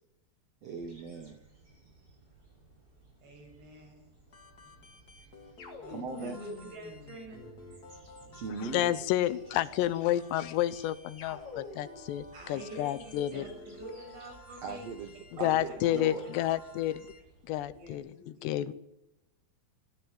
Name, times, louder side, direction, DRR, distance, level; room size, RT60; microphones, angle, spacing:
voice 1, 0.6-1.4 5.9-6.4 8.3-8.9 14.6-15.1 15.4-16.2, right 4 dB, 55° right, 1.8 m, -39 dB
sound 1, 0.8-17.9, right 2 dB, 20° right, 7.0 m, -58 dB
voice 2, 3.2-4.1 5.8-7.5 12.3-15.0 15.4-15.5 17.7-18.7, right 1 dB, 80° right, 9.0 m, -47 dB
sound 2, 4.3-17.2, left 2 dB, 30° left, 1.9 m, -53 dB
sound 3, 5.6-8.1 11.2-12.2, left 5 dB, 55° left, 4.6 m, -47 dB
voice 3, 8.6-13.4 15.3-17.0 17.4-18.7, left 13 dB, 85° left, 3.1 m, -30 dB
21.0 x 13.0 x 10.0 m
omnidirectional pair, 4.8 m